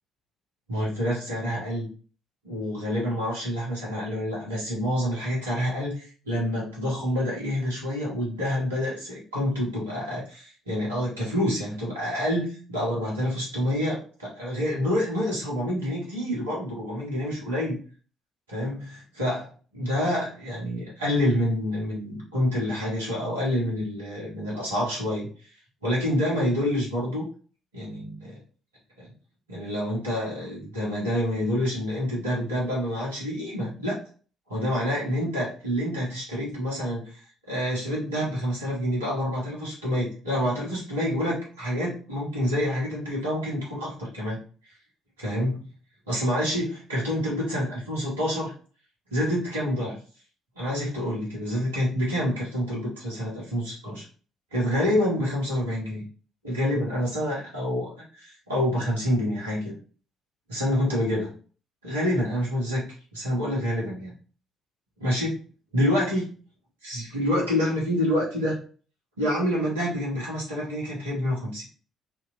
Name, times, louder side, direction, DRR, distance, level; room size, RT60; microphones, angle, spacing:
voice 1, 0.7-1.9 2.4-17.8 18.5-19.5 19.7-25.3 25.8-27.2 27.7-28.4 29.0-29.1 29.5-34.0 34.5-37.1 37.5-44.4 45.2-45.6 46.1-48.5 49.1-50.0 50.6-54.0 54.5-56.0 56.4-59.7 60.5-61.3 61.8-62.9 63.1-64.1 65.0-65.4 65.7-66.3 66.8-68.6 69.2-71.7, equal, 85° right, -5 dB, 1.2 m, -27 dB
2.9 x 2.8 x 2.6 m, 0.39 s
figure-of-eight pair, 45°, 0 cm